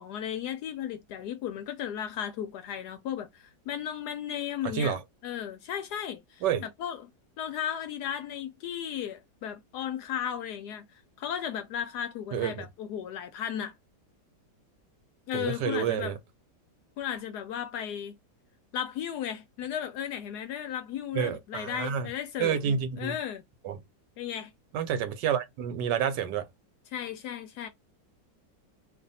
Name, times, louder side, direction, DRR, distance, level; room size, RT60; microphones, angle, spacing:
voice 1, 0.0-4.9 5.2-7.1 7.4-13.7 15.3-16.2 17.0-18.1 18.7-23.4 24.2-24.5 26.9-27.7, left 9 dB, 75° left, 1.1 m, -35 dB
voice 2, 4.6-5.0 6.4-6.7 12.3-12.7 15.3-16.2 21.1-22.1 22.4-23.2 23.6-23.8 24.7-26.5, right 8 dB, 80° right, 1.3 m, -29 dB
2.7 x 2.6 x 4.0 m
omnidirectional pair, 1.9 m